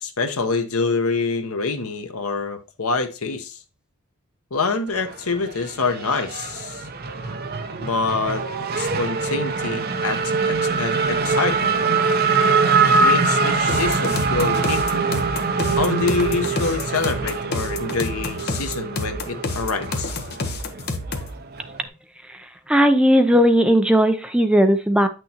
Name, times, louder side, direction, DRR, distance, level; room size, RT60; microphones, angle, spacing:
voice 1, 0.0-3.6 4.5-6.9 7.8-8.4 8.7-10.2 10.5-11.8 12.8-14.8 15.8-20.1, left 4 dB, 75° left, 7 dB, 1.2 m, -26 dB
Race car auto racing / Accelerating revving vroom, 4.9-21.9, right 4 dB, 45° right, 0.9 m, -23 dB
sound 1, 13.7-21.4, left 2 dB, 45° left, 1.0 m, -29 dB
voice 2, 22.7-25.1, equal, 5° right, 7 dB, 0.6 m, -16 dB
9.1 x 6.3 x 2.9 m, 0.32 s
head